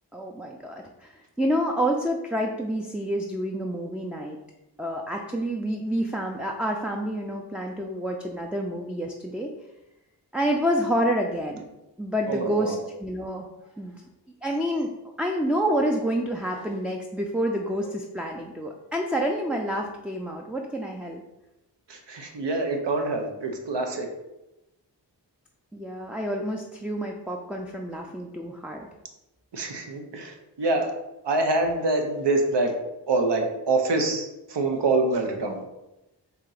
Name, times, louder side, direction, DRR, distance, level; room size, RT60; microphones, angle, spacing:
voice 1, 0.1-4.4 4.8-9.5 10.3-11.6 12.0-13.5 13.8-14.0 14.4-14.9 15.2-21.2 25.7-28.9, equal, 5° right, 0 dB, 0.4 m, -28 dB
voice 2, 12.3-12.8 21.9-24.1 29.5-30.9 31.2-32.7 33.1-35.6, right 2 dB, 70° right, 3 dB, 0.8 m, -25 dB
4.3 x 2.8 x 3.9 m, 0.94 s
wide cardioid pair, 60°, 43 cm